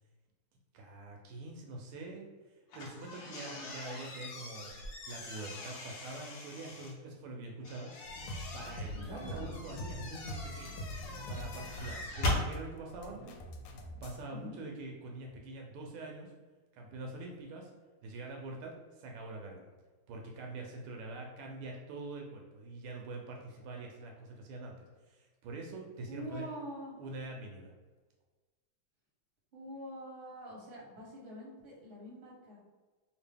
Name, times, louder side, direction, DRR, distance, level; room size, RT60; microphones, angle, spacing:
voice 1, 0.7-2.3 2.7-4.7 5.1-7.9 8.5-10.9 11.3-13.4 14.0-16.3 16.7-17.7 18.0-19.7 20.1-26.4 27.0-27.7, right 2 dB, 80° right, 1 dB, 1.5 m, -44 dB
sound 1, 2.7-6.9 7.6-12.5, left 2 dB, 65° left, 1.3 m, -40 dB
sound 2, 8.0-14.2, left 1 dB, 90° left, 1.5 m, -44 dB
voice 2, 8.9-9.5 14.3-14.6 26.1-27.0 29.5-32.6, right 1 dB, 40° right, -4 dB, 1.3 m, -46 dB
3.3 x 2.9 x 3.3 m, 1.3 s
omnidirectional pair, 2.4 m